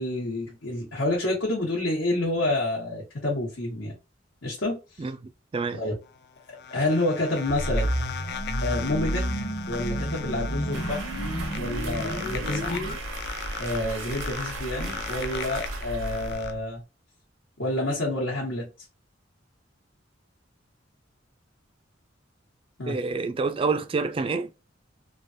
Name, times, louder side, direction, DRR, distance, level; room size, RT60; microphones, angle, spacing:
voice 1, 0.0-3.9 4.4-5.0 5.7-6.0 6.7-7.9 8.6-9.2 9.7-11.1 11.6-12.8 13.6-16.8 17.6-18.7 22.8-23.0, left 1 dB, 80° left, 1.2 m, -28 dB
sound 1, 6.0-16.5, left 7 dB, 60° left, 0.4 m, -38 dB
sound 2, 7.5-13.0, right 1 dB, 40° left, 0.8 m, -30 dB
sound 3, 10.7-16.8, right 2 dB, 85° right, 0.6 m, -36 dB
voice 2, 22.9-24.5, right 4 dB, 30° right, 0.3 m, -27 dB
3.2 x 2.3 x 2.6 m
head